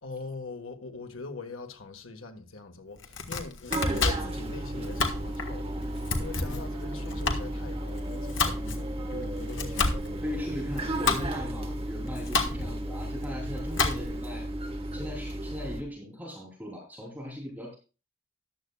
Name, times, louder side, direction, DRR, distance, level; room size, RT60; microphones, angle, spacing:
voice 1, 0.0-5.7 6.2-10.2, left 4 dB, 85° left, 1.7 m, -42 dB
Domestic sounds home sounds, 2.9-14.3, left 3 dB, 65° left, 1.7 m, -32 dB
sound 1, 3.7-15.8, right 1 dB, 30° right, 1.5 m, -34 dB
voice 2, 10.2-14.5 14.9-17.7, left 1 dB, 10° right, 3.2 m, -39 dB
14.5 x 11.0 x 2.4 m
head